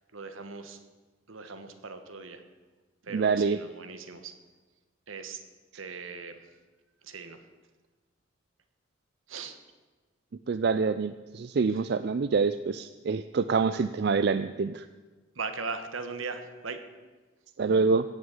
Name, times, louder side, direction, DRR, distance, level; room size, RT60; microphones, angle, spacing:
voice 1, 0.1-0.8 1.3-2.4 3.0-4.3 5.1-5.4 5.7-6.4 7.0-7.4 9.3-9.6 15.3-16.8, right 4 dB, 80° right, 8 dB, 1.4 m, -39 dB
voice 2, 3.1-3.6 10.5-14.9 17.6-18.0, right 4 dB, 50° right, 12 dB, 0.4 m, -26 dB
16.5 x 6.4 x 8.3 m, 1.3 s
head